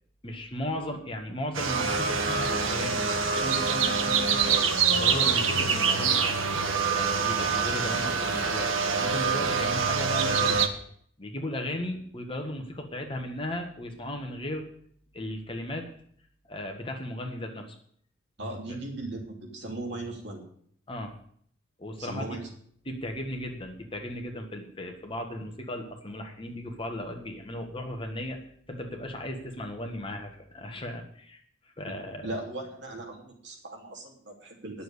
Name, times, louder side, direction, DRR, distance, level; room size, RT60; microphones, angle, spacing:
voice 1, 0.2-4.6 4.9-6.4 6.9-10.6 11.2-14.7 15.1-15.9 16.5-17.7 20.9-21.1 21.8-22.3 22.8-28.4 28.7-31.4 31.8-32.3, left 1 dB, 25° left, 3 dB, 1.6 m, -36 dB
sound 1, 1.5-10.7, right 5 dB, 85° right, 1.3 m, -25 dB
voice 2, 18.4-20.4 22.0-22.5 31.9-32.0 32.2-34.8, right 2 dB, 60° right, 0 dB, 2.9 m, -38 dB
10.5 x 7.0 x 8.2 m, 0.62 s
head